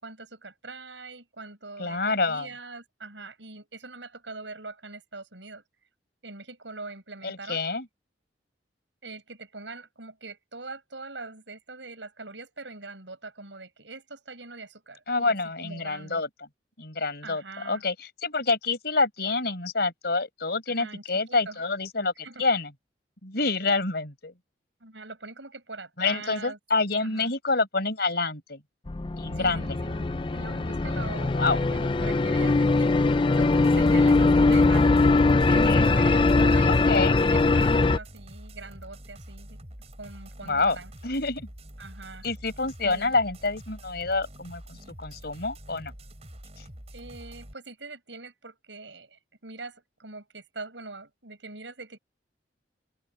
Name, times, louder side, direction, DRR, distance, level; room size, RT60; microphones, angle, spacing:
voice 1, 0.0-5.6 6.2-7.6 9.0-16.2 17.2-17.8 20.7-21.6 22.2-22.4 24.8-26.6 27.0-27.3 29.3-33.0 33.3-39.6 40.0-40.9 41.8-42.3 42.8-43.1 46.9-52.0, right 3 dB, 90° right, 7.5 m, -43 dB
voice 2, 1.8-2.5 7.2-7.9 15.1-16.5 16.8-22.7 23.2-24.3 26.0-28.6 29.2-29.7 31.3-31.6 35.5-35.9 36.7-37.2 40.5-40.8 41.0-41.5 42.2-45.9 46.6-46.7, left 3 dB, 60° left, 5.1 m, -27 dB
sound 1, 28.9-38.0, left 3 dB, 30° left, 0.5 m, -21 dB
sound 2, 33.4-47.5, equal, 35° right, 5.0 m, -46 dB
open air
head